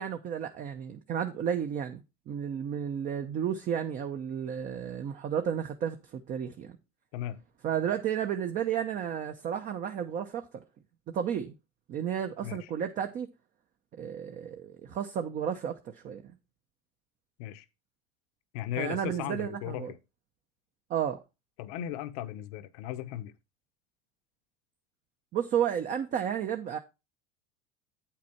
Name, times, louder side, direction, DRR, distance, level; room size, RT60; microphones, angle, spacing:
voice 1, 0.0-6.8 7.6-10.6 11.1-11.6 11.9-13.3 13.9-16.3 18.8-19.9 20.9-21.2 25.3-26.8, right 8 dB, 45° right, 0.9 m, -32 dB
voice 2, 18.5-20.0 21.6-23.3, left 12 dB, 75° left, 0.9 m, -36 dB
8.4 x 5.8 x 4.4 m
supercardioid pair, 110°, 19 cm